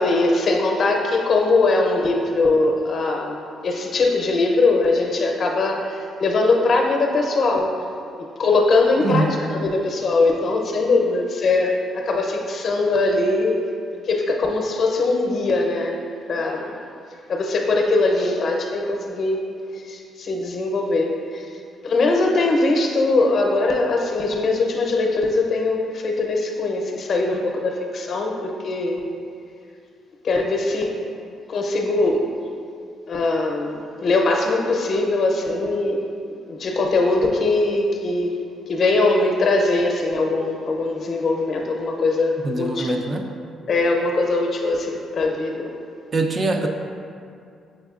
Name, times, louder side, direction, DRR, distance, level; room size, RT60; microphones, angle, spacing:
voice 1, 0.0-7.7 8.4-13.6 14.0-16.0 16.3-16.8 17.3-19.4 19.9-21.4 21.8-29.0 30.2-30.9 31.5-32.2 33.1-36.0 36.5-38.4 38.7-43.0 43.7-45.7, left 3 dB, 55° left, 2 dB, 0.6 m, -21 dB
voice 2, 9.0-9.5 42.4-43.3 46.1-46.7, right 2 dB, 40° right, 4 dB, 0.4 m, -23 dB
6.2 x 3.4 x 2.4 m, 2.4 s
cardioid pair, 90°, 0 cm